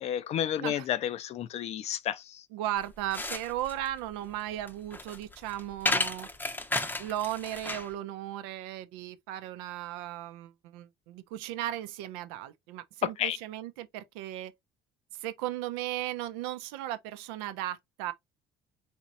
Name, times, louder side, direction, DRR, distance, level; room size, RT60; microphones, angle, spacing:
voice 1, 0.0-2.4 13.2-13.4, left 10 dB, 55° left, 0.5 m, -31 dB
voice 2, 2.5-6.3 7.0-14.5 15.1-18.1, right 13 dB, 85° right, 0.5 m, -36 dB
sound 1, 2.8-7.9, left 2 dB, 15° left, 0.6 m, -33 dB
4.3 x 2.9 x 2.5 m
supercardioid pair, 80°, 13 cm